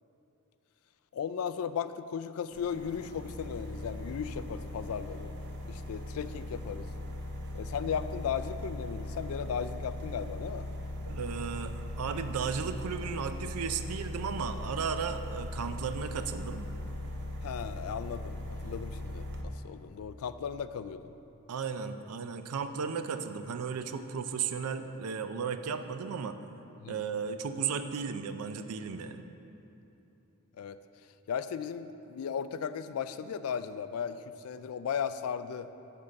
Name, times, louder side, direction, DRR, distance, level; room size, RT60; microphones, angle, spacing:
voice 1, 1.1-5.3 5.7-6.9 7.5-10.7 17.4-21.1 26.8-27.0 30.6-30.8 31.3-34.2 34.4-35.7, left 7 dB, 75° left, 12 dB, 0.3 m, -36 dB
sound 1, 2.5-19.4, left 1 dB, 55° right, 0.8 m, -39 dB
voice 2, 11.1-16.7 21.5-26.4 26.9-29.2, right 6 dB, 90° right, 9 dB, 0.4 m, -35 dB
9.7 x 3.6 x 6.5 m, 2.9 s
head